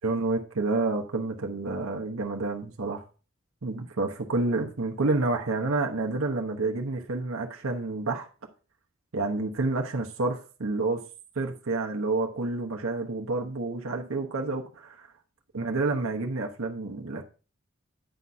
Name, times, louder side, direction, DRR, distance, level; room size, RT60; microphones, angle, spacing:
voice 1, 0.0-3.0 3.6-8.3 9.1-11.0 11.4-15.1 15.5-17.2, right 3 dB, 80° right, 1.0 m, -29 dB
9.0 x 4.2 x 4.7 m
head